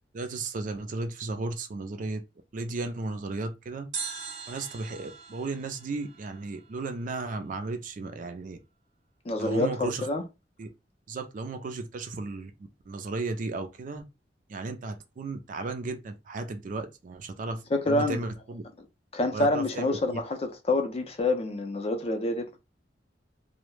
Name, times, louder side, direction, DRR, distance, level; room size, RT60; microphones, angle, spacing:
voice 1, 0.1-2.2 2.5-3.9 4.5-8.6 9.4-10.1 10.6-10.7 11.1-14.0 14.5-18.6 19.3-20.2, right 3 dB, 45° right, 0.4 m, -35 dB
sound 1, 3.9-7.0 7.3-7.4, right 5 dB, 75° right, 0.7 m, -41 dB
voice 2, 9.3-10.2 17.7-18.2 19.1-22.6, left 2 dB, 35° left, 0.4 m, -27 dB
2.2 x 2.0 x 3.0 m
head